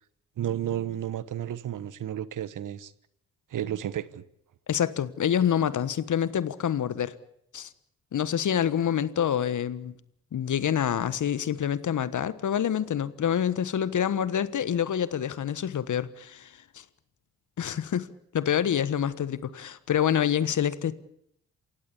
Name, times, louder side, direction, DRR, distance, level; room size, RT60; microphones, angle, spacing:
voice 1, 0.4-2.9 3.5-4.2, right 11 dB, 60° right, 1.2 m, -32 dB
voice 2, 4.7-7.1 7.5-7.7 8.1-9.9 10.3-16.8 17.6-18.1 18.3-20.9, left 9 dB, 55° left, 1.4 m, -27 dB
28.0 x 16.0 x 8.5 m
hypercardioid pair, 45°, 35 cm